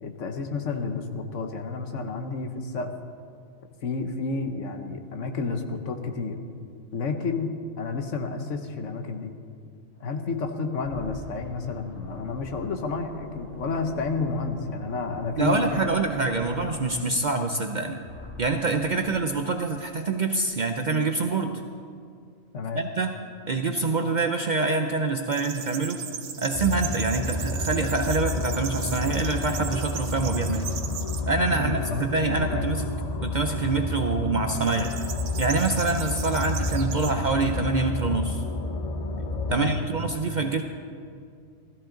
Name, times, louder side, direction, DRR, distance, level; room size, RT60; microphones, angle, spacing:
voice 1, 0.0-2.9 3.8-6.4 6.9-9.3 10.0-15.9 16.1-16.3 22.5-22.9 31.5-32.1 32.4-32.7 39.5-39.8, left 4 dB, 70° left, 6 dB, 1.3 m, -30 dB
sound 1, 10.8-17.7 18.0-19.1, left 1 dB, 85° left, 3.4 m, -43 dB
voice 2, 15.4-18.0 18.4-21.5 22.7-23.1 23.5-26.0 26.4-30.7 31.3-32.9 33.2-34.9 35.4-38.4 39.5-40.6, right 3 dB, 50° right, 5 dB, 0.6 m, -26 dB
sound 2, 25.3-31.2 31.8-32.3 34.5-37.1, right 7 dB, 75° right, 1.1 m, -37 dB
sound 3, 26.5-39.5, left 2 dB, 35° left, 0.7 m, -30 dB
16.5 x 13.5 x 3.8 m, 2.3 s
omnidirectional pair, 1.3 m